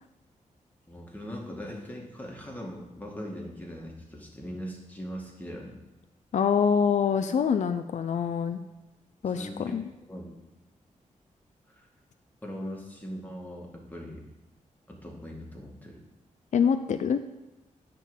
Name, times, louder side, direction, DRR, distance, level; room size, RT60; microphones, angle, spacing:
voice 1, 0.9-5.8 9.2-9.8 10.1-10.4 11.7-11.9 12.4-14.2 14.9-16.0, equal, 10° left, -1 dB, 2.1 m, -40 dB
voice 2, 6.3-8.6 9.2-9.8 16.5-17.2, left 7 dB, 60° left, 9 dB, 0.5 m, -25 dB
10.5 x 3.8 x 7.4 m, 1.1 s
cardioid pair, 90°, 14 cm